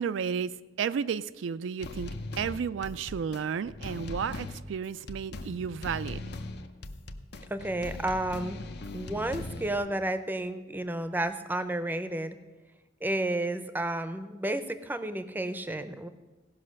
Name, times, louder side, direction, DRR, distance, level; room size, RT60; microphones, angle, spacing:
voice 1, 0.0-6.2, right 7 dB, 80° right, 14 dB, 0.3 m, -33 dB
sound 1, 1.8-9.8, left 2 dB, 60° left, 0.7 m, -40 dB
voice 2, 7.5-8.6 8.9-12.4 13.0-16.1, right 1 dB, 10° right, 11 dB, 0.6 m, -31 dB
16.5 x 5.7 x 6.4 m, 1.2 s
head